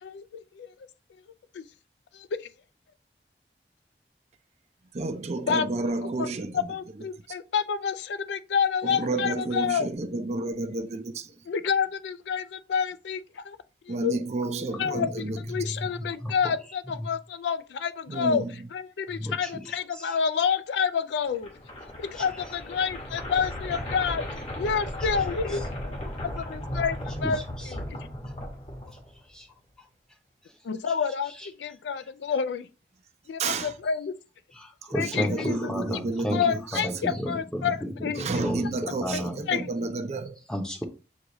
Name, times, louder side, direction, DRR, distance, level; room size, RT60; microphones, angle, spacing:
voice 1, 0.0-0.7 1.5-1.6 2.1-2.5 5.5-5.7 6.2-6.3 6.7-9.9 11.5-13.6 14.0-14.2 14.8-18.4 18.7-21.5 22.0-24.3 24.6-26.0 26.2-27.4 30.6-31.3 31.6-32.7 33.3-34.1 35.0-35.7 36.3-37.8 38.0-38.3 39.1-39.2 39.5-39.7, left 6 dB, 85° left, 0.3 m, -28 dB
voice 2, 4.9-6.7 8.8-11.3 13.9-15.4 18.1-18.5 33.4-33.7 34.9-36.8 37.1-37.2 38.2-40.4, right 3 dB, 40° right, 0.4 m, -31 dB
voice 3, 14.7-16.5 16.9-17.2 19.1-20.5 22.1-22.3 25.0-25.6 26.1-26.5 27.2-27.7 28.2-28.4 28.9-29.0 29.3-29.5 29.8-29.9 30.4-30.6 30.9-31.0 31.3-31.5 32.0-32.1 34.5-39.4 40.5-40.8, equal, 5° left, 0.6 m, -34 dB
sound 1, 21.3-29.3, left 1 dB, 35° left, 0.9 m, -36 dB
6.3 x 2.3 x 2.9 m
head